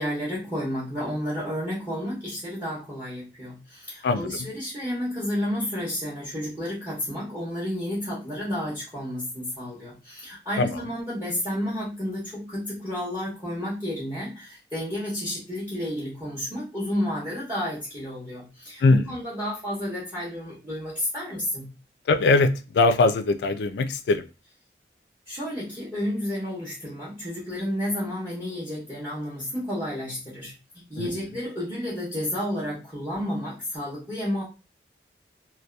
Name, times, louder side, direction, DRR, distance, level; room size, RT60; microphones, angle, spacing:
voice 1, 0.0-21.7 25.3-34.4, equal, 15° right, -7 dB, 0.8 m, -31 dB
voice 2, 4.0-4.5 10.6-10.8 18.8-19.1 22.1-24.2 31.0-31.2, left 3 dB, 70° left, 10 dB, 0.3 m, -21 dB
2.7 x 2.2 x 2.3 m, 0.30 s
head